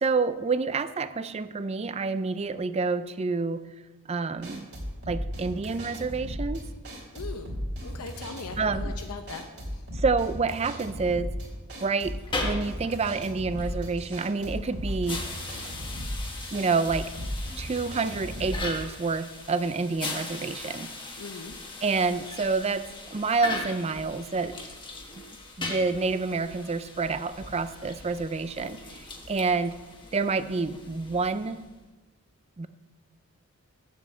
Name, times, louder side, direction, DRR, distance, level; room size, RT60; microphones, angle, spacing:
voice 1, 0.0-3.6 4.1-4.7 5.1-6.6 8.6-8.9 9.9-11.3 11.8-12.2 12.4-15.2 16.5-17.1 17.6-20.9 21.8-24.5 25.6-28.8 29.3-29.8 30.1-31.6 32.6-32.7, right 4 dB, 30° right, 13 dB, 0.4 m, -28 dB
sound 1, 4.4-18.7, equal, 50° right, 2.7 m, -36 dB
voice 2, 7.1-7.5 7.8-9.4 9.7-9.8 21.2-21.6, left 4 dB, 85° left, 5 dB, 0.8 m, -39 dB
sound 2, 12.1-31.8, left 2 dB, 20° left, 1.3 m, -39 dB
7.6 x 7.5 x 8.1 m, 1.1 s
head